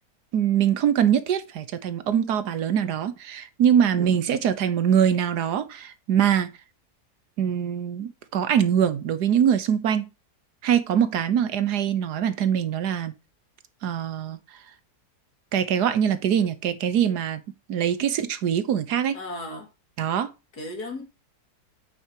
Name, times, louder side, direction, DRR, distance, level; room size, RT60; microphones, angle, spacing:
voice 1, 0.3-6.5 7.4-10.1 10.6-13.1 13.8-14.4 15.5-17.4 17.7-19.2 20.0-20.3, right 9 dB, 80° right, 1.5 m, -23 dB
voice 2, 19.1-19.7 20.5-21.0, left 2 dB, 75° left, 3.0 m, -35 dB
8.5 x 7.0 x 2.9 m
omnidirectional pair, 1.7 m